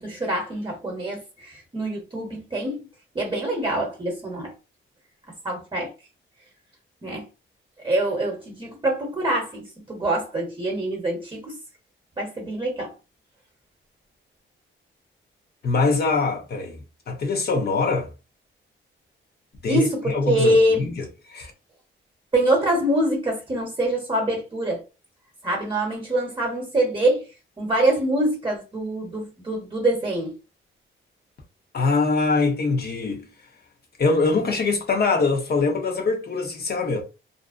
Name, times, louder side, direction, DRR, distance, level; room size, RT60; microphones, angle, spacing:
voice 1, 0.0-2.9 3.1-4.5 5.4-5.9 7.0-7.3 7.8-11.6 12.2-12.9 19.7-20.8 22.3-24.8 25.4-27.3 27.6-30.3, right 1 dB, 25° right, 0.9 m, -24 dB
voice 2, 15.6-16.8 17.1-18.1 19.6-21.5 31.7-33.2 34.0-37.0, left 3 dB, 50° left, 0.8 m, -23 dB
2.5 x 2.1 x 2.4 m
cardioid pair, 95°, 21 cm